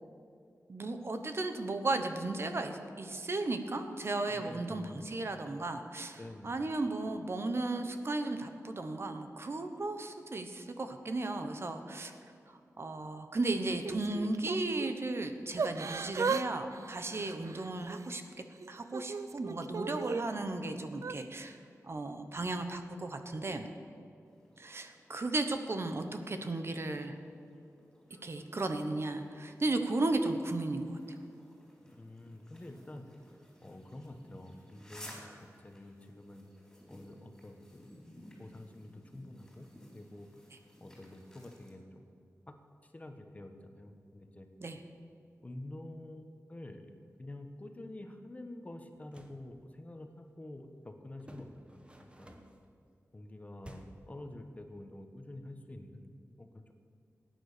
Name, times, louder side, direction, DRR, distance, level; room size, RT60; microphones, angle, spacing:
voice 1, 0.7-6.2 6.4-12.1 12.5-18.2 18.7-21.6 21.8-23.7 24.6-27.1 28.2-31.0 44.6-44.8, right 2 dB, 45° right, 7 dB, 1.1 m, -35 dB
voice 2, 4.3-5.0 6.2-6.6 31.9-33.0 33.6-36.4 36.9-37.9 38.4-39.7 39.9-40.3 40.8-42.1 42.5-42.6 42.8-44.5 45.4-46.9 47.2-52.3 53.1-56.1 56.4-56.7, left 1 dB, 25° left, 6 dB, 1.2 m, -48 dB
Yell / Crying sobbing, 13.7-14.9 15.6-16.5 16.7-18.1 18.6-20.2 20.9-21.2, right 5 dB, 65° right, 0.5 m, -36 dB
sound 1, 24.3-41.7, equal, 10° left, 4.2 m, -57 dB
sound 2, 48.9-49.4 51.2-52.7 53.6-54.1, right 1 dB, 20° right, 1.3 m, -53 dB
18.0 x 9.4 x 6.8 m, 2.4 s
wide cardioid pair, 120°, 6 cm